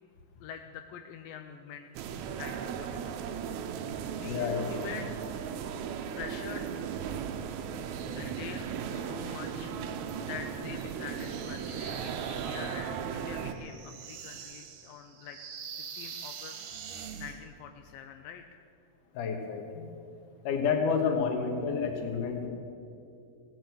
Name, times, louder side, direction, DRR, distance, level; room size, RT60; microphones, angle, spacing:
voice 1, 0.4-3.3 4.1-5.1 6.2-6.7 7.4-9.7 10.3-15.4 15.7-16.7 17.2-18.6 21.1-21.2, left 8 dB, 80° left, 6 dB, 2.2 m, -45 dB
sound 1, 1.9-13.5, right 7 dB, 90° right, 1.6 m, -36 dB
voice 2, 4.2-4.8 19.1-19.9 20.4-22.5, left 6 dB, 60° left, 3 dB, 2.8 m, -30 dB
sound 2, 11.1-17.4, right 7 dB, 65° right, 2.1 m, -44 dB
16.5 x 9.2 x 8.0 m, 2.7 s
omnidirectional pair, 4.4 m